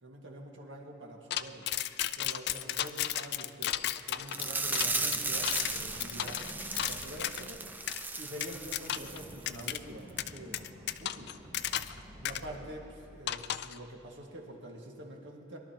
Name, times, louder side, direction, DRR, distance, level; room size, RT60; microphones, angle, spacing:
voice 1, 0.0-1.7 2.1-3.7 4.1-6.4 6.8-7.7 8.2-10.6 11.0-11.6 12.2-15.6, right 1 dB, 70° right, 0 dB, 1.8 m, -46 dB
sound 1, 1.3-7.4 7.9-8.0 8.4-9.2 9.5-9.8 10.2-12.0 12.2-12.4 13.3-13.8, left 12 dB, 60° left, 0.3 m, -34 dB
Run, 4.0-13.7, equal, 35° right, 2.8 m, -51 dB
sound 2, 4.3-9.3 9.6-9.8 10.2-10.3, right 3 dB, 10° right, 0.4 m, -36 dB
22.5 x 12.0 x 2.9 m, 2.9 s
head